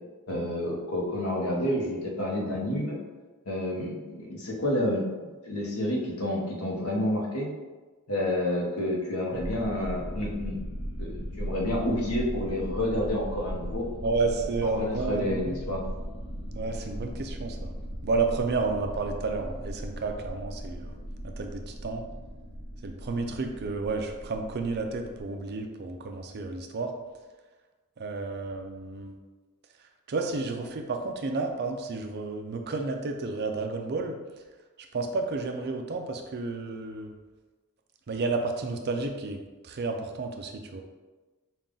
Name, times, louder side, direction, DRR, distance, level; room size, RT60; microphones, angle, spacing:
voice 1, 0.3-3.0 3.5-7.5 8.1-10.6 11.0-13.8 14.6-15.8, left 1 dB, 70° left, -1 dB, 1.0 m, -29 dB
sound 1, 9.3-25.2, equal, 20° left, 0.7 m, -38 dB
voice 2, 14.0-15.6 16.5-17.7 18.0-20.9 21.2-22.1 22.8-26.9 28.0-29.1 30.1-34.2 34.9-37.1 38.1-40.8, right 3 dB, 50° right, 4 dB, 0.5 m, -31 dB
5.3 x 2.4 x 3.7 m, 1.3 s
head